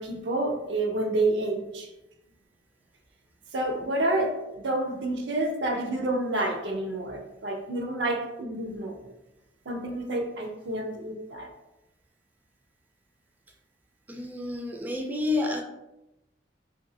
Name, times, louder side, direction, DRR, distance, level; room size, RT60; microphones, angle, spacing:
voice 1, 0.0-1.9 3.5-9.0 9.7-11.5, right 2 dB, 90° right, 2 dB, 0.6 m, -29 dB
voice 2, 14.1-15.6, left 2 dB, 10° right, 1 dB, 0.3 m, -29 dB
3.2 x 2.6 x 2.6 m, 0.93 s
head